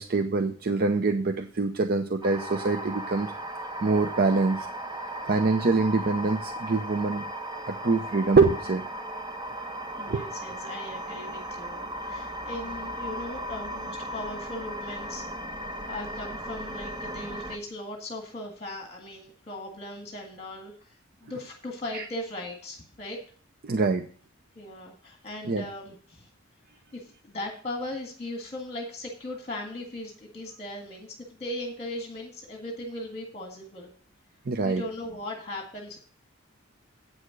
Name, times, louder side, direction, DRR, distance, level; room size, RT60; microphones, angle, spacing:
voice 1, 0.0-3.3 3.8-4.7 5.2-7.3 7.7-8.8 10.1-10.3 21.9-22.1 23.6-24.0 25.4-25.6 34.5-34.8, right 3 dB, 50° right, 7 dB, 0.6 m, -24 dB
sound 1, 2.2-17.6, right 1 dB, 20° right, 1.0 m, -36 dB
voice 2, 10.0-15.3 15.9-21.0 21.2-23.2 24.6-26.3 26.9-33.9 34.6-36.0, left 1 dB, 30° left, 1 dB, 1.8 m, -38 dB
8.7 x 6.7 x 6.3 m, 0.44 s
head